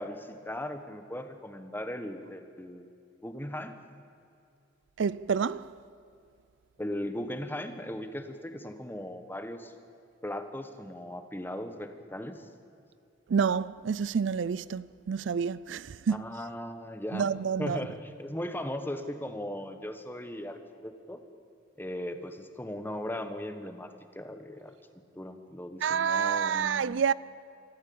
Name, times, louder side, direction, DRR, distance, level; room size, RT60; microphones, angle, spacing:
voice 1, 0.0-2.9 3.2-3.7 6.8-9.7 10.2-12.5 16.1-17.3 17.6-21.2 21.8-24.7 25.1-26.9, left 1 dB, 10° left, 1.3 m, -38 dB
voice 2, 5.0-5.7 13.3-16.2 17.1-17.8 25.8-27.1, right 6 dB, 70° right, 0.4 m, -28 dB
25.5 x 14.0 x 8.6 m
head